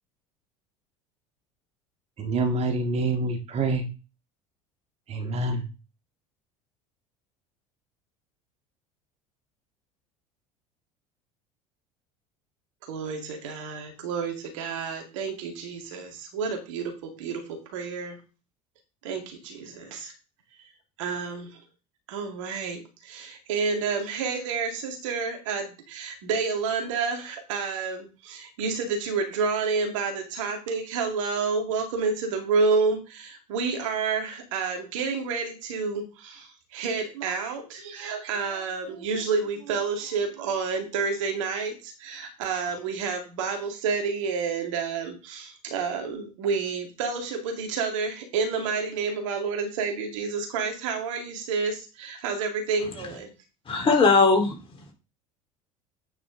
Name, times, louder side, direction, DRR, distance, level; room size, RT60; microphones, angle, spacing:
voice 1, 2.2-3.9 5.1-5.7, right 2 dB, 40° right, 5 dB, 1.9 m, -26 dB
voice 2, 12.8-18.2 19.0-20.1 21.0-21.6 22.1-53.3, right 5 dB, 65° right, 4 dB, 2.4 m, -29 dB
voice 3, 53.7-54.5, left 4 dB, 30° left, 2 dB, 4.0 m, -19 dB
9.2 x 6.1 x 3.9 m, 0.30 s
figure-of-eight pair, 70°, 17 cm